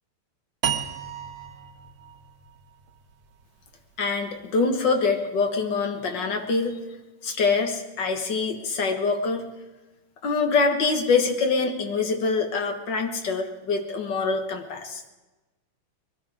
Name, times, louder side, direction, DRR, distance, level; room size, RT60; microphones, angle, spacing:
sound 1, 0.6-3.8, right 8 dB, 65° right, 1.7 m, -33 dB
voice 1, 4.0-6.8 7.2-9.5 10.2-15.0, left 4 dB, 60° left, 5 dB, 2.1 m, -25 dB
21.5 x 12.5 x 4.9 m, 1.1 s
omnidirectional pair, 2.3 m